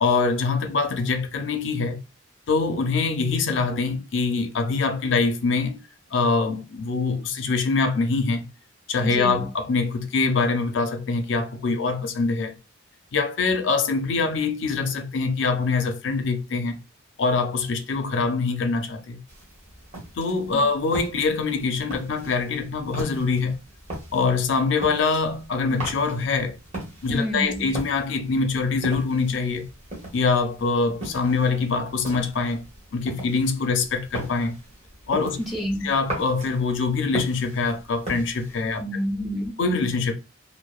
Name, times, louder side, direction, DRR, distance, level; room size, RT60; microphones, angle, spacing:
voice 1, 0.0-2.0 2.5-5.8 6.1-8.5 8.9-12.5 13.1-16.8 17.2-19.2 20.2-23.6 24.1-26.6 27.0-29.6 30.1-32.6 32.9-34.5 35.1-35.4 35.8-38.8 39.6-40.2, left 4 dB, 60° left, 0.4 m, -24 dB
voice 2, 9.0-9.5 20.5-20.6 27.1-27.7 35.4-35.9 38.8-39.5, equal, ahead, 0.4 m, -28 dB
sound 1, 19.3-38.8, right 1 dB, 35° right, 0.9 m, -39 dB
2.7 x 2.0 x 2.2 m
head